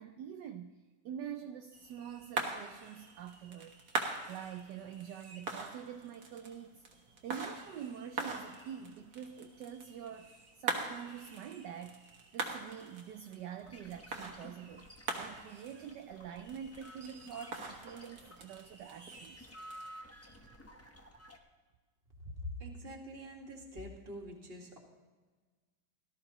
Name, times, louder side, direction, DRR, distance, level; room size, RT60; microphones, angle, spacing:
voice 1, 0.0-3.7 4.3-6.8 7.2-14.9 15.2-19.5 20.8-20.9, right 8 dB, 70° right, 7 dB, 1.2 m, -46 dB
sound 1, 1.7-19.9, right 3 dB, 55° right, 1.8 m, -43 dB
sound 2, 13.6-18.7 19.0-21.4, equal, 15° left, 0.5 m, -54 dB
voice 2, 22.2-24.8, left 1 dB, 30° right, 1 dB, 1.9 m, -45 dB
18.0 x 13.0 x 3.0 m, 1.4 s
omnidirectional pair, 2.1 m